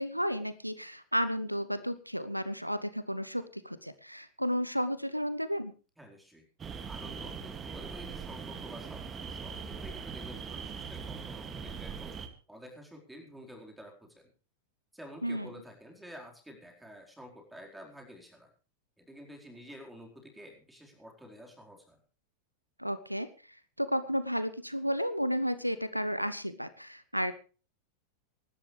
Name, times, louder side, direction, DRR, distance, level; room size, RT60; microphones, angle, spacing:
voice 1, 0.0-5.7 15.2-15.5 22.8-27.4, equal, 90° right, 15 dB, 0.8 m, -33 dB
voice 2, 6.0-6.4 6.9-12.1 12.5-14.3 14.9-18.5 19.0-22.0, equal, 5° right, 1 dB, 4.4 m, -50 dB
sound 1, 6.6-12.3, right 6 dB, 20° right, 2.2 m, -41 dB
24.5 x 12.0 x 3.3 m, 0.36 s
figure-of-eight pair, 90°, 0 cm